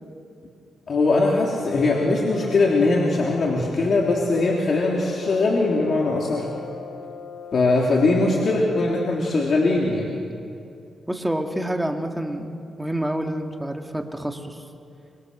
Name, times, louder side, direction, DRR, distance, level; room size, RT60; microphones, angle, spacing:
voice 1, 0.9-6.5 7.5-10.2, left 3 dB, 55° left, -2 dB, 3.3 m, -21 dB
Brass instrument, 1.6-9.4, left 6 dB, 75° left, 1.3 m, -39 dB
voice 2, 11.1-12.5 12.8-14.6, right 1 dB, 5° right, 3 dB, 2.2 m, -28 dB
25.0 x 24.5 x 6.8 m, 2.5 s
cardioid pair, 85°, 0 cm